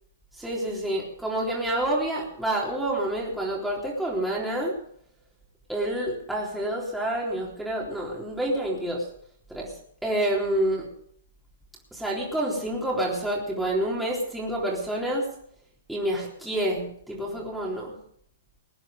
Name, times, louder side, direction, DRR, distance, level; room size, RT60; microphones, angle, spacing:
voice 1, 0.3-4.7 5.7-9.1 9.5-9.7 10.0-10.9 11.9-15.3 15.9-17.9, right 1 dB, ahead, -5 dB, 3.7 m, -28 dB
20.5 x 9.8 x 5.2 m, 0.64 s
hypercardioid pair, 120°, 0 cm